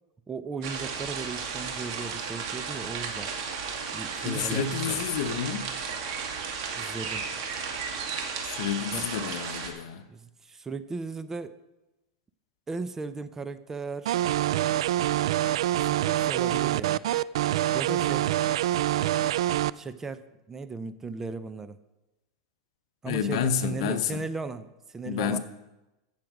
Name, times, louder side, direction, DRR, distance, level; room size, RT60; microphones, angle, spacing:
voice 1, 0.3-3.3 3.9-5.0 6.7-7.2 8.9-9.1 10.1-11.6 12.7-14.2 15.8-17.0 17.7-18.3 19.7-21.8 23.0-25.4, right 4 dB, 15° right, 13 dB, 0.5 m, -37 dB
sound 1, 0.6-9.7, right 5 dB, 60° right, 2.4 m, -34 dB
voice 2, 4.2-5.7 8.4-10.0 23.0-24.2 25.1-25.4, left 8 dB, 65° left, 9 dB, 1.0 m, -29 dB
sound 2, 14.1-19.7, right 13 dB, 75° right, 0.3 m, -25 dB
15.5 x 7.3 x 5.1 m, 0.99 s
supercardioid pair, 140°, 3 cm